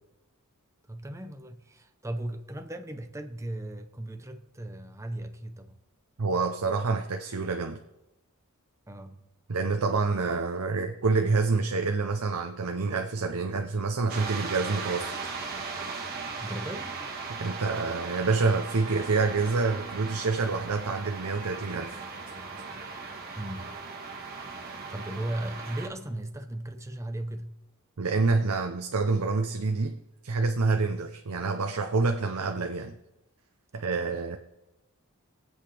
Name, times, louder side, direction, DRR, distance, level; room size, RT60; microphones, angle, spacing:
voice 1, 0.9-5.8 8.9-9.3 16.2-17.0 23.3-23.8 24.9-27.6, right 1 dB, 15° right, 7 dB, 0.8 m, -37 dB
voice 2, 6.2-7.8 9.5-15.2 17.3-22.0 28.0-30.0 30.2-32.9 33.7-34.4, right 4 dB, 80° right, 5 dB, 0.7 m, -27 dB
sound 1, 14.1-25.9, right 4 dB, 45° right, 1.6 m, -38 dB
22.0 x 8.1 x 3.4 m, 0.95 s
head